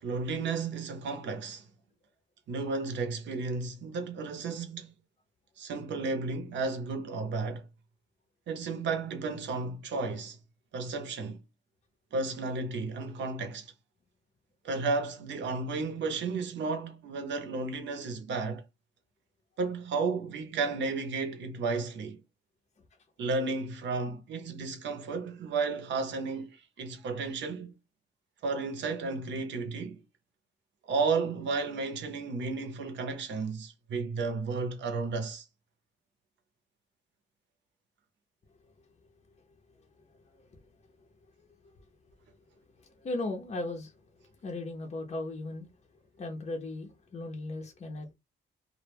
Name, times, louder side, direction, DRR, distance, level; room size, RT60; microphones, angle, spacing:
voice 1, 0.0-1.7 2.5-4.9 5.6-7.7 8.5-10.4 10.7-11.4 12.1-13.7 14.6-18.6 19.6-22.2 23.2-27.7 28.4-30.0 30.8-35.5, right 4 dB, 70° right, 0.7 m, -33 dB
voice 2, 39.8-40.7 41.0-41.1 41.5-41.7 42.8-44.0 44.4-45.7 46.2-48.2, left 2 dB, 35° left, 0.6 m, -38 dB
2.1 x 2.1 x 3.3 m
cardioid pair, 90°, 20 cm